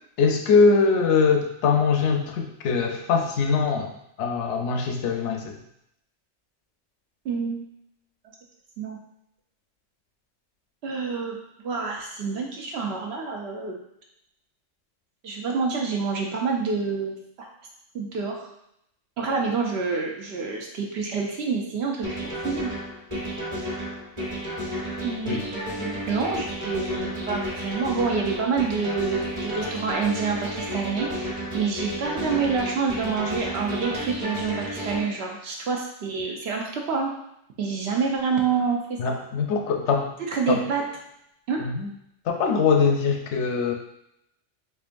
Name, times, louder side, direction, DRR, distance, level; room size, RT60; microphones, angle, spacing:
voice 1, 0.2-3.9 4.2-5.6 25.3-25.4 39.0-40.1 40.5-40.6 41.6-41.9 42.3-43.7, left 5 dB, 70° left, 3 dB, 0.8 m, -22 dB
voice 2, 7.2-7.6 8.8-9.0 10.8-13.8 15.2-17.5 17.9-18.5 19.2-22.7 25.0-37.1 37.6-39.2 40.2-40.9 41.5-41.6, right 5 dB, 60° right, 1 dB, 0.8 m, -27 dB
sound 1, 22.0-35.0, equal, 25° right, 1.2 m, -32 dB
4.5 x 2.6 x 2.5 m, 0.77 s
omnidirectional pair, 1.3 m